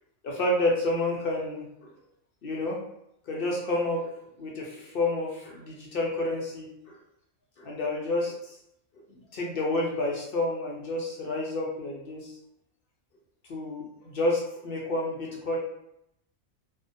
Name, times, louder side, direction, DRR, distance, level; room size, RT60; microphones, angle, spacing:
voice 1, 0.2-1.6 2.4-2.8 3.3-4.1 4.4-6.7 7.6-8.4 9.3-12.3 13.5-15.6, left 2 dB, 65° left, -2 dB, 0.6 m, -29 dB
2.7 x 2.1 x 2.5 m, 0.79 s
omnidirectional pair, 1.4 m